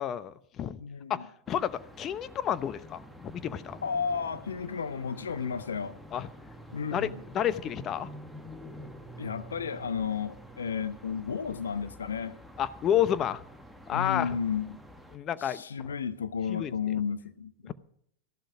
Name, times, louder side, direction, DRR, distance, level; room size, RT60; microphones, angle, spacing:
voice 1, 0.0-0.8 1.1-3.8 6.1-6.3 6.9-7.1 7.3-8.1 12.6-13.4 13.9-14.4 15.1-15.6 16.5-16.7 17.7-17.8, left 10 dB, 35° left, 0.9 m, -30 dB
voice 2, 0.8-1.2 3.8-6.0 6.7-7.2 9.2-12.4 13.9-14.8 15.4-17.5, left 6 dB, 80° left, 1.0 m, -33 dB
sound 1, 1.5-15.2, equal, 5° left, 1.5 m, -48 dB
14.0 x 11.5 x 5.0 m
figure-of-eight pair, 90°, 0 cm